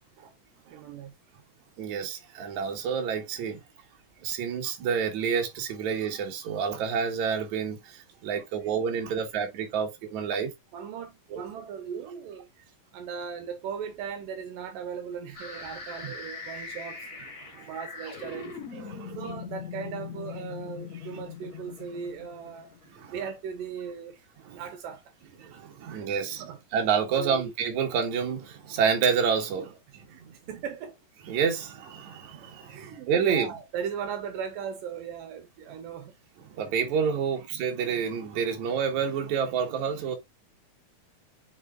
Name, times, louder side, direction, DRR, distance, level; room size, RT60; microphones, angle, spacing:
voice 1, 0.7-1.1 10.7-12.5 12.9-17.2 17.6-18.5 19.1-22.7 23.1-24.3 24.5-25.1 25.8-26.1 26.4-26.6 27.2-27.4 29.6-29.7 30.1-31.0 32.3-36.1, right 7 dB, 80° right, 2.5 m, -38 dB
voice 2, 1.8-3.6 4.2-10.5 11.3-11.4 16.0-16.1 17.4-17.7 18.7-19.2 23.0-23.1 24.4-24.6 25.4-26.4 26.7-29.7 30.2-30.4 31.3-33.5 36.5-40.2, right 6 dB, 65° right, 2.6 m, -29 dB
sound 1, 15.3-23.3, left 6 dB, 30° left, 2.1 m, -41 dB
8.5 x 4.8 x 2.4 m
omnidirectional pair, 3.9 m